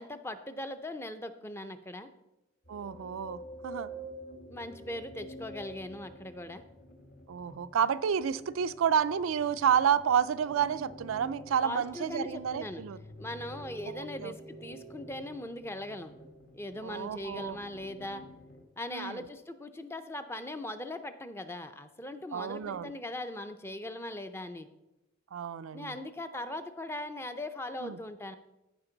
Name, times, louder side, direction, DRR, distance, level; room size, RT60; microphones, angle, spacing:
voice 1, 0.0-2.1 4.5-6.6 11.6-12.8 13.2-16.1 16.5-18.2 18.8-24.7 25.7-28.4, left 1 dB, 10° left, 9 dB, 0.5 m, -40 dB
sound 1, 2.6-18.7, equal, 45° left, 1.2 m, -49 dB
voice 2, 2.7-3.9 7.3-13.0 13.9-14.3 16.8-17.6 18.9-19.2 22.3-22.9 25.3-25.9 27.8-28.0, right 8 dB, 85° right, 14 dB, 0.4 m, -30 dB
14.5 x 5.2 x 3.9 m, 0.95 s
head